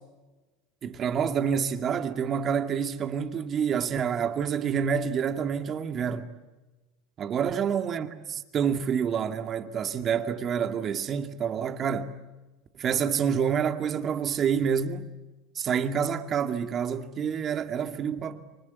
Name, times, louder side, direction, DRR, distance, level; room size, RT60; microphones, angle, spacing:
voice 1, 0.8-6.3 7.2-12.1 12.8-15.1 15.6-18.4, right 7 dB, 40° right, 2.3 m, -28 dB
29.0 x 24.5 x 8.4 m
hypercardioid pair, 95°, 0 cm